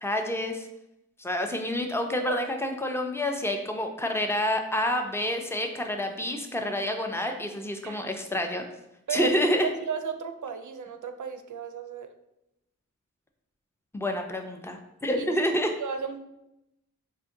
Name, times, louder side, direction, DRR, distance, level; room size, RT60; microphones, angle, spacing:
voice 1, 0.0-0.7 1.2-8.6 9.1-9.7 13.9-15.7, left 1 dB, 10° left, 4 dB, 0.6 m, -28 dB
voice 2, 9.6-12.1 15.1-15.3 15.8-16.2, right 6 dB, 75° right, 8 dB, 0.5 m, -34 dB
4.2 x 2.6 x 3.7 m, 0.88 s
wide cardioid pair, 50°, 31 cm